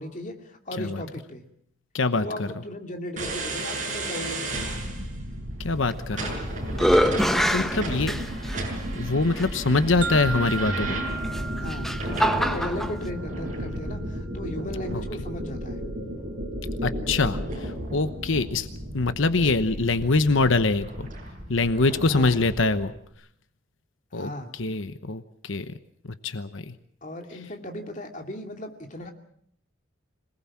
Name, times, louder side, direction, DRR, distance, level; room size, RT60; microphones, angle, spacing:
voice 1, 0.0-1.5 2.2-4.8 7.0-8.3 11.6-15.9 22.0-22.4 24.1-24.5 27.0-29.1, left 1 dB, 40° left, 4 dB, 2.7 m, -36 dB
voice 2, 1.9-2.5 5.6-6.3 7.5-8.1 8.9-11.0 14.9-15.0 16.8-18.7 18.9-20.9 21.5-22.9 24.1-25.7 26.2-26.7, left 3 dB, 75° left, 11 dB, 1.0 m, -24 dB
sound 1, 3.2-22.9, right 1 dB, 40° right, 7.0 m, -33 dB
sound 2, 5.9-6.4 6.7-8.6 9.4-9.5 11.2-12.9, equal, ahead, 1.0 m, -24 dB
sound 3, 10.0-14.0, right 3 dB, 55° right, 0.9 m, -36 dB
26.5 x 19.5 x 7.4 m, 0.66 s
head